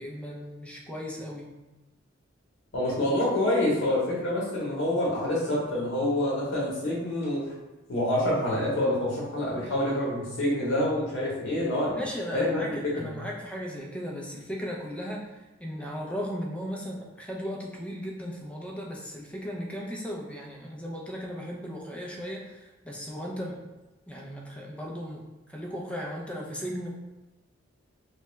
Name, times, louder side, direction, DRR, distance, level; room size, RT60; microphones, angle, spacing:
voice 1, 0.0-1.5 11.9-23.6 24.1-26.9, equal, 5° left, -2 dB, 0.5 m, -36 dB
voice 2, 2.7-7.5 7.9-12.0 12.3-12.6 13.0-13.1, left 1 dB, 70° left, -6 dB, 0.9 m, -27 dB
3.3 x 2.2 x 3.0 m, 1.1 s
head